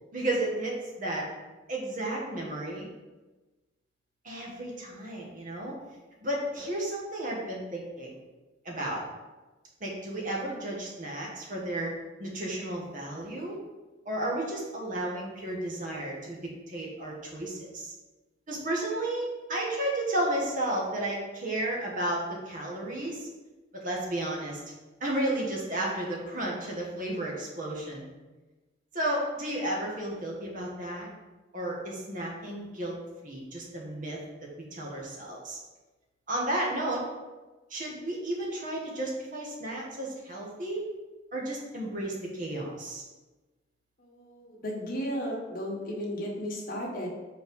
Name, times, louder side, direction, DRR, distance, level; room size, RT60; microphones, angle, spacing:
voice 1, 0.1-1.3 1.7-2.9 4.2-5.8 6.2-8.2 8.6-9.0 9.8-11.9 12.2-13.6 14.0-16.4 16.7-17.9 18.5-23.3 23.7-24.6 25.0-28.1 28.9-31.1 31.5-32.9 33.2-34.2 34.7-35.6 36.3-37.0 37.7-40.9 41.3-43.0, right 1 dB, 45° right, -3 dB, 1.5 m, -33 dB
voice 2, 44.0-47.1, equal, 45° left, -3 dB, 1.5 m, -34 dB
4.7 x 4.5 x 5.4 m, 1.2 s
head